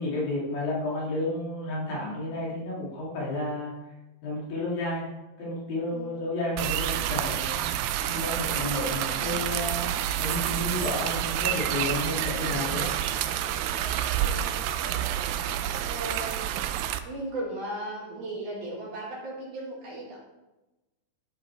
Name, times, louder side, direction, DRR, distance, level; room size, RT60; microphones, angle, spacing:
voice 1, 0.0-3.7 4.2-5.1 5.4-7.5 8.1-9.9 10.2-12.9, left 1 dB, 70° left, -5 dB, 4.1 m, -31 dB
sound 1, 6.6-17.0, right 11 dB, 90° right, 2.5 m, -29 dB
voice 2, 14.2-14.5 15.8-16.4 17.0-20.2, right 1 dB, 60° right, -5 dB, 3.7 m, -36 dB
12.5 x 5.2 x 4.5 m, 1.0 s
omnidirectional pair, 4.2 m